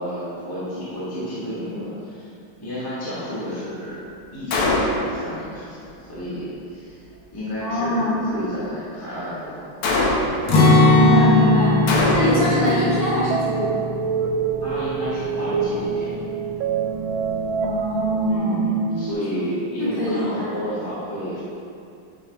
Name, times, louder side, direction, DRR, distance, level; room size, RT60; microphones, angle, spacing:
voice 1, 0.0-2.3 2.6-4.0 4.3-7.0 7.3-9.7 12.3-13.0 14.6-16.1 18.3-21.4, equal, 10° left, -12 dB, 1.4 m, -31 dB
Gunshot gunfire, 4.5-5.2 9.8-10.5 11.9-12.6, left 2 dB, 85° left, 1.8 m, -21 dB
voice 2, 7.6-8.2 10.9-11.8 12.1-13.7 17.6-18.6 19.8-20.7, left 1 dB, 30° left, -10 dB, 1.3 m, -23 dB
Acoustic guitar, 10.5-16.4 16.7-16.9 17.3-17.8, left 2 dB, 65° left, 1.7 m, -20 dB
sound 1, 12.3-19.1, right 5 dB, 75° right, 1.3 m, -26 dB
9.5 x 4.7 x 3.5 m, 2.6 s
omnidirectional pair, 2.3 m